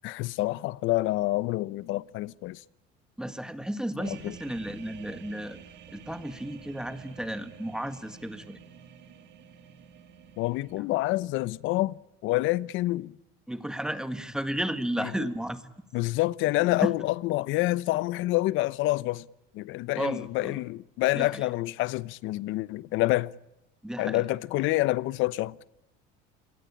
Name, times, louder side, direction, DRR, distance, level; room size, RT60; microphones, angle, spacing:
voice 1, 0.0-2.6 4.0-4.3 10.4-13.2 15.0-15.1 15.9-19.2 19.5-23.3 24.0-25.6, left 18 dB, 70° left, 0.9 m, -27 dB
voice 2, 3.2-5.6 5.9-8.6 13.5-15.7 16.8-16.9 20.0-20.6 21.1-21.5 23.8-24.2, right 1 dB, 5° right, 1.8 m, -33 dB
sound 1, 4.0-10.8, right 7 dB, 55° right, 3.5 m, -50 dB
27.5 x 22.0 x 8.6 m
cardioid pair, 140°, 21 cm